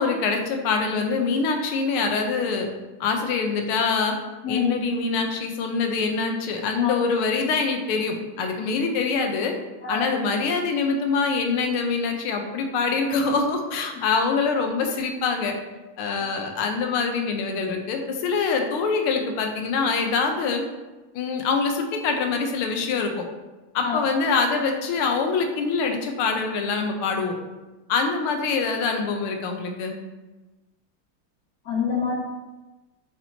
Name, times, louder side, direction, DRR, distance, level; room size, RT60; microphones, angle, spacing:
voice 1, 0.0-2.7 3.0-4.1 4.5-9.6 9.9-15.5 16.0-20.6 21.1-23.3 23.7-27.4 27.9-30.0, left 4 dB, 85° left, 4 dB, 1.7 m, -24 dB
voice 2, 31.7-32.1, left 6 dB, 55° left, -3 dB, 1.3 m, -26 dB
8.6 x 4.2 x 2.8 m, 1.2 s
omnidirectional pair, 2.3 m